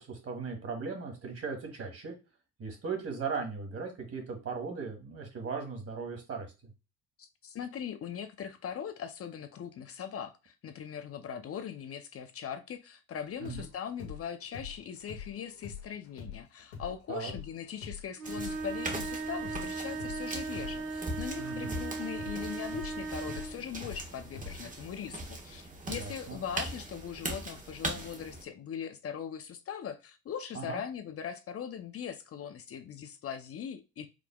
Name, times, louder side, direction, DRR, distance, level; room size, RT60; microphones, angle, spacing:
voice 1, 0.0-2.2 2.6-6.5 13.4-13.7 17.1-17.3 21.4-21.8 25.9-26.4 30.5-30.8, right 5 dB, 45° right, 3 dB, 1.8 m, -38 dB
voice 2, 7.2-34.1, left 8 dB, 45° left, 9 dB, 0.6 m, -40 dB
sound 1, 13.3-20.2 20.5-24.8, left 6 dB, 90° left, 1.2 m, -45 dB
sound 2, 18.2-28.4, right 2 dB, 25° right, 1.3 m, -41 dB
sound 3, 18.2-23.6, right 3 dB, 70° right, 1.1 m, -37 dB
5.0 x 3.4 x 2.3 m, 0.29 s
supercardioid pair, 70°, 34 cm